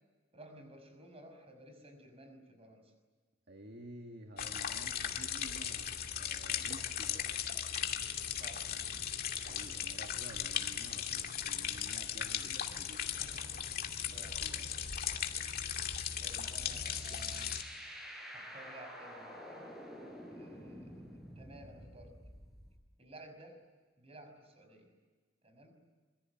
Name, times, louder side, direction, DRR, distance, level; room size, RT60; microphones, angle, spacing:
voice 1, 0.3-2.9 8.3-9.1 9.4-9.7 12.7-13.6 14.0-14.8 16.2-17.5 18.3-19.7 20.3-22.2 23.0-23.6 24.0-24.9 25.4-25.7, right 1 dB, 30° right, 6 dB, 5.8 m, -55 dB
voice 2, 3.5-5.9 6.2-7.3 9.5-13.3 14.1-14.6, right 1 dB, 55° right, 4 dB, 2.0 m, -52 dB
sound 1, 4.4-17.6, left 8 dB, 50° left, 2.4 m, -37 dB
sound 2, 15.6-22.8, equal, ahead, 4.8 m, -50 dB
26.0 x 23.5 x 9.1 m, 1.4 s
head